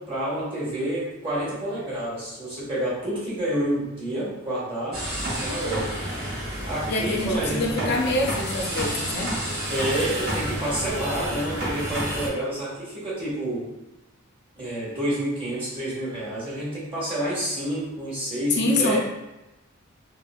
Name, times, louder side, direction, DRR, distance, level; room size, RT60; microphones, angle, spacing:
voice 1, 0.0-6.0 6.6-8.0 9.7-13.7 14.6-19.0, right 1 dB, 25° right, -8 dB, 1.2 m, -29 dB
sound 1, 4.9-12.3, right 1 dB, 50° right, 1.2 m, -30 dB
voice 2, 6.9-9.4 18.5-19.0, left 2 dB, 50° left, 1 dB, 0.4 m, -25 dB
3.5 x 2.4 x 2.2 m, 0.98 s
head